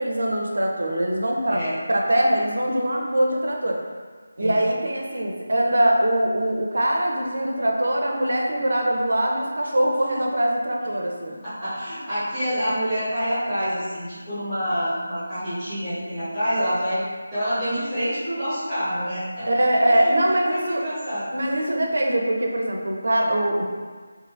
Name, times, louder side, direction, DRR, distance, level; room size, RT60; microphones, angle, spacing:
voice 1, 0.0-1.6 1.9-3.8 4.4-11.3 19.5-20.8 21.3-23.7, right 1 dB, 75° right, 0 dB, 0.5 m, -22 dB
voice 2, 1.5-1.8 4.4-4.7 11.3-17.0 17.3-19.5 19.9-21.3, equal, 10° left, -16 dB, 0.9 m, -27 dB
2.7 x 2.4 x 2.5 m, 1.5 s
figure-of-eight pair, 175°, 0 cm